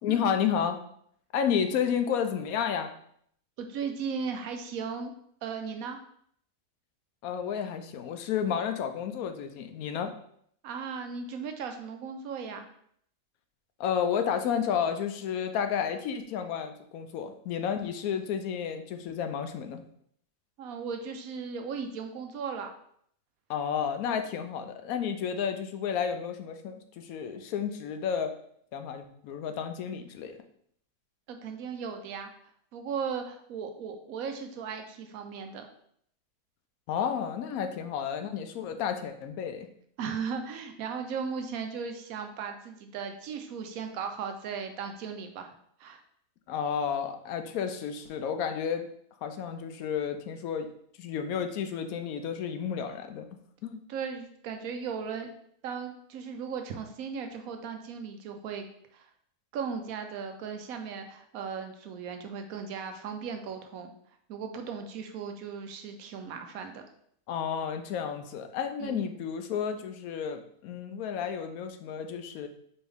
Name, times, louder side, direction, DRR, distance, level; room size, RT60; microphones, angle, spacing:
voice 1, 0.0-0.8 1.3-2.9 7.2-10.1 13.8-19.8 23.5-28.3 28.7-30.4 36.9-39.7 46.5-48.9 49.2-50.7 51.0-53.3 53.6-53.8 67.3-72.5, left 7 dB, 70° left, 7 dB, 0.9 m, -31 dB
voice 2, 3.6-5.1 5.4-6.0 10.6-12.7 20.6-22.7 31.3-32.3 32.7-35.7 40.0-45.5 45.8-46.0 53.9-55.3 55.6-58.6 58.9-59.1 59.5-63.9 64.3-66.8 68.8-69.0, right 6 dB, 70° right, 6 dB, 1.0 m, -37 dB
4.4 x 3.4 x 3.4 m, 0.66 s
omnidirectional pair, 1.7 m